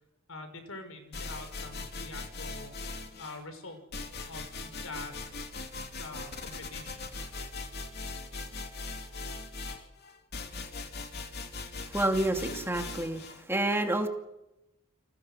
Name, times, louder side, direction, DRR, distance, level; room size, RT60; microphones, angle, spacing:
voice 1, 0.3-2.7 3.2-3.8 4.2-5.2 6.0-7.1, left 2 dB, 75° left, 7 dB, 5.9 m, -44 dB
sound 1, 1.1-3.4 3.9-13.4, left 3 dB, 50° left, 3.1 m, -40 dB
voice 2, 11.9-13.2 13.5-14.1, right 1 dB, 10° right, 4 dB, 2.5 m, -28 dB
30.0 x 26.5 x 6.6 m, 0.94 s
head